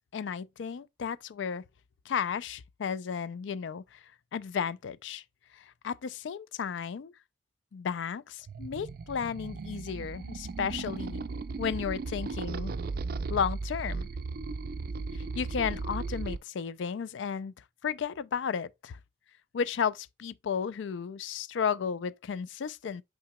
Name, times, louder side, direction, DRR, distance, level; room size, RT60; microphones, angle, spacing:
voice 1, 0.1-1.6 2.1-4.0 4.3-5.2 5.5-7.1 7.7-11.2 11.6-12.7 13.3-14.1 15.1-17.5 17.8-19.0 19.5-23.0, left 7 dB, 75° left, 0.4 m, -33 dB
sound 1, 8.5-16.4, right 4 dB, 50° right, 0.3 m, -36 dB
5.8 x 3.8 x 2.2 m
head